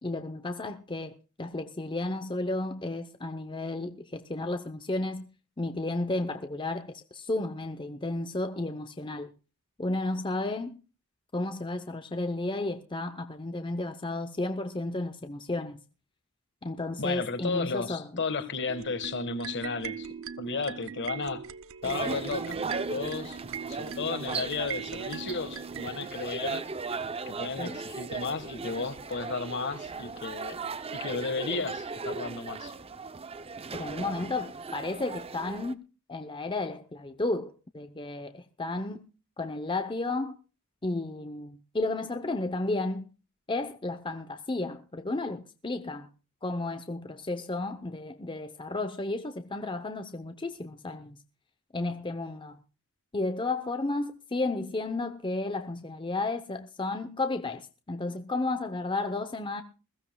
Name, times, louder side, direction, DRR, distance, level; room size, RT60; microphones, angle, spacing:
voice 1, 0.0-5.3 5.6-9.3 9.8-10.8 11.3-15.8 16.6-18.2 27.6-27.8 33.7-35.8 36.1-39.0 39.4-40.3 40.8-43.1 43.5-46.1 46.4-51.2 51.7-52.6 53.1-59.6, left 2 dB, 20° left, 0.8 m, -33 dB
voice 2, 17.0-20.1 20.4-21.4 21.8-22.6 22.9-26.6 27.2-30.6 30.9-32.7, left 4 dB, 55° left, 1.6 m, -33 dB
sound 1, 18.7-25.9, right 7 dB, 65° right, 0.7 m, -40 dB
sound 2, 21.8-35.7, right 4 dB, 25° right, 0.6 m, -37 dB
21.0 x 15.5 x 2.3 m
head